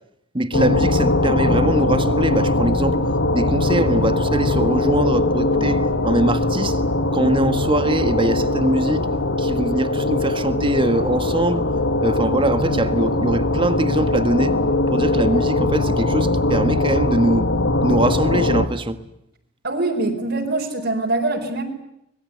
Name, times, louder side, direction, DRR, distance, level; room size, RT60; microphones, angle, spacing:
voice 1, 0.3-3.0 3.3-6.8 7.1-9.1 9.4-11.7 12.0-14.6 14.9-17.5 17.8-19.0, right 1 dB, 25° right, 1.6 m, -22 dB
sound 1, 0.5-18.7, left 2 dB, 75° left, 2.1 m, -21 dB
voice 2, 19.6-21.6, right 2 dB, 55° right, 4.6 m, -23 dB
25.0 x 21.5 x 9.5 m
head